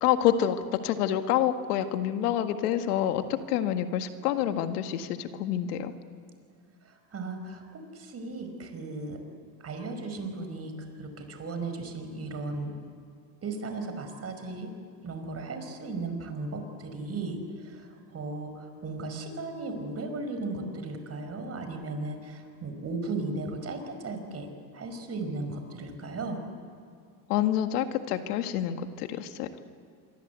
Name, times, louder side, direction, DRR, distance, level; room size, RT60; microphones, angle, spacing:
voice 1, 0.0-5.9 27.3-29.5, left 10 dB, 85° left, 8 dB, 1.9 m, -27 dB
voice 2, 6.9-9.2 9.6-10.7 11.0-12.8 13.4-14.7 15.0-26.4, right 3 dB, 30° right, 6 dB, 5.4 m, -36 dB
26.5 x 24.0 x 8.3 m, 2.3 s
supercardioid pair, 105°, 45 cm